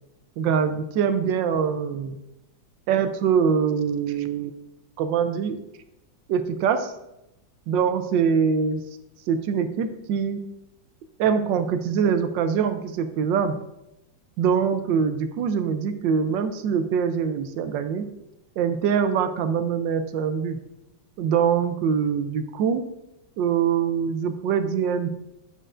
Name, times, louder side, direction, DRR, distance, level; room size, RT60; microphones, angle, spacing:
voice 1, 0.4-2.2 2.9-4.6 5.0-5.6 6.3-6.9 7.7-8.8 9.3-10.4 11.2-13.6 14.4-18.0 18.6-20.6 21.2-22.9 23.4-25.1, right 7 dB, 80° right, 9 dB, 1.3 m, -23 dB
8.7 x 6.6 x 2.5 m, 0.90 s
omnidirectional pair, 2.0 m